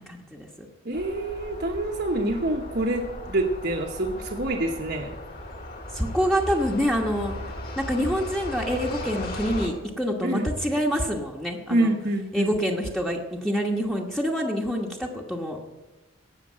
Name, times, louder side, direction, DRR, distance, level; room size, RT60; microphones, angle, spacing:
voice 1, 0.0-0.7 5.9-7.3 7.8-11.9 12.3-15.6, equal, ahead, -1 dB, 1.2 m, -26 dB
voice 2, 0.8-5.1 10.2-10.5 11.7-12.5, right 1 dB, 50° right, 1 dB, 1.1 m, -26 dB
sound 1, 0.9-9.7, left 1 dB, 45° left, 2.6 m, -37 dB
17.5 x 6.8 x 7.5 m, 1.1 s
head